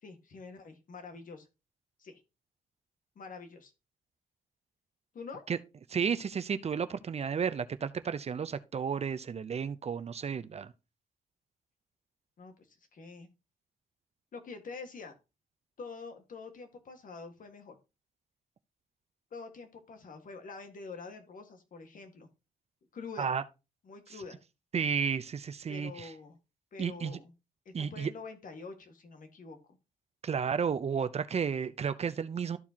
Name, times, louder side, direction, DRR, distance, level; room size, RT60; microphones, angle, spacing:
voice 1, 0.0-1.5 2.0-2.2 3.1-3.7 5.1-5.4 12.4-13.3 14.3-15.1 15.8-17.8 19.3-22.3 22.9-23.3 23.8-24.4 25.7-26.4 26.7-27.3 27.6-29.8, left 4 dB, 60° left, 1.7 m, -46 dB
voice 2, 5.9-10.7 23.2-23.4 24.7-26.1 26.8-27.2 27.7-28.1 30.2-32.6, right 6 dB, 40° right, 0.6 m, -32 dB
13.5 x 4.6 x 2.8 m
cardioid pair, 100°, 16 cm